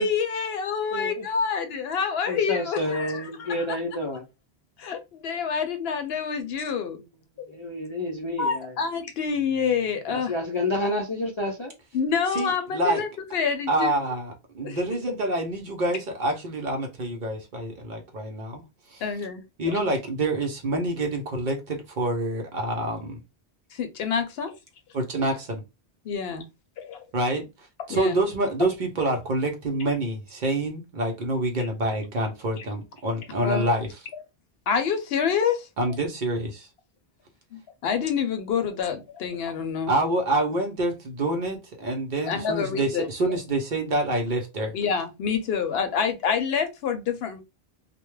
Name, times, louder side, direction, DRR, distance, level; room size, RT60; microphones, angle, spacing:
voice 1, 0.0-3.7 4.8-7.0 7.4-7.5 8.4-10.3 11.9-14.0 14.6-14.8 19.0-19.4 23.7-24.5 26.0-26.5 26.8-27.0 27.9-28.2 32.6-32.7 33.4-33.7 34.7-35.7 37.5-39.9 42.3-43.1 44.7-47.4, left 6 dB, 70° left, 0.8 m, -27 dB
voice 2, 0.9-1.2 2.3-4.2 6.9-7.0 7.5-8.7 10.1-11.7, left 1 dB, 40° left, 0.4 m, -29 dB
voice 3, 12.3-13.0 13.7-18.6 18.9-19.0 19.6-23.2 24.9-25.6 27.1-33.9 35.8-36.7 39.9-44.7, right 1 dB, 55° right, 0.7 m, -27 dB
2.2 x 2.1 x 3.1 m
omnidirectional pair, 1.1 m